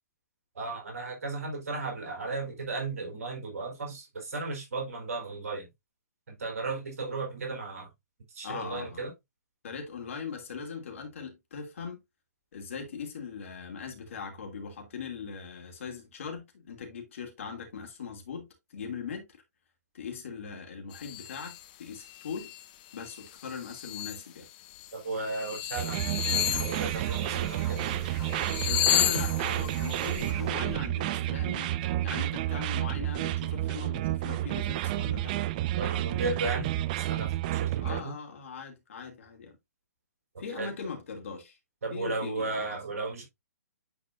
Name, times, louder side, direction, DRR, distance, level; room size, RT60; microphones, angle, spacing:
voice 1, 0.5-5.7 6.4-7.9 8.3-9.1 24.9-27.8 35.8-36.7 37.1-38.2 40.3-40.7 41.8-43.2, right 3 dB, 55° right, 3.8 m, -35 dB
voice 2, 8.4-9.1 9.6-12.0 12.5-19.4 19.9-22.5 22.9-24.5 28.6-31.7 32.0-35.3 37.8-39.6 40.4-41.6 41.9-42.8, left 6 dB, 50° left, 2.8 m, -40 dB
sound 1, 20.9-21.6 22.1-22.6 23.0-24.2 24.8-24.9 25.2-27.9 28.2-30.3, left 15 dB, 30° left, 0.7 m, -32 dB
sound 2, 25.8-38.0, right 14 dB, 30° right, 0.4 m, -30 dB
sound 3, 26.4-30.8, right 2 dB, 5° right, 2.4 m, -43 dB
9.6 x 4.8 x 2.6 m
figure-of-eight pair, 125°, 9 cm